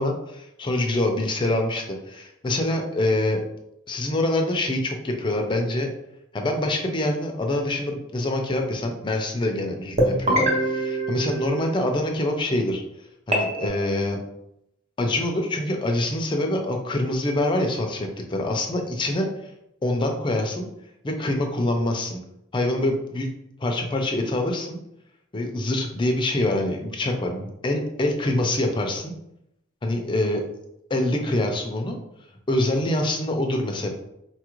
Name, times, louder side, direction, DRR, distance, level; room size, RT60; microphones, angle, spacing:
voice 1, 0.0-3.4 3.9-5.9 6.3-12.8 13.3-14.2 15.0-19.3 19.8-20.7 21.0-22.2 22.5-23.3 23.6-24.8 25.3-29.1 29.8-30.4 30.9-32.0 32.5-33.9, left 1 dB, 25° left, 2 dB, 0.5 m, -25 dB
sound 1, 10.0-12.1 13.3-13.7, right 1 dB, 35° right, 0.7 m, -24 dB
4.0 x 2.4 x 3.0 m, 0.82 s
head